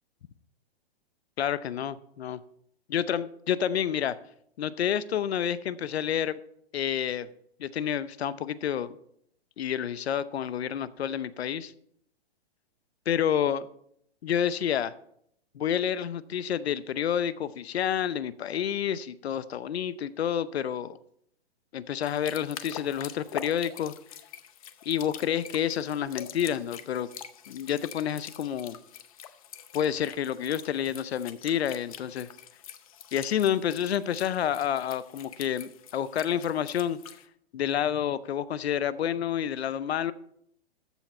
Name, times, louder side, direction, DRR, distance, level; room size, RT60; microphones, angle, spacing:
voice 1, 1.4-2.4 2.9-4.2 4.6-6.4 6.7-7.3 7.6-9.0 9.6-11.7 13.1-13.7 14.2-14.9 15.5-21.0 21.7-23.9 24.9-27.1 27.5-28.8 29.7-32.3 33.1-37.0 37.5-40.1, left 9 dB, 90° left, 17 dB, 0.8 m, -29 dB
sound 1, 22.0-37.2, left 10 dB, 35° left, 0.7 m, -45 dB
14.0 x 7.2 x 4.3 m, 0.71 s
hypercardioid pair, 170°, 31 cm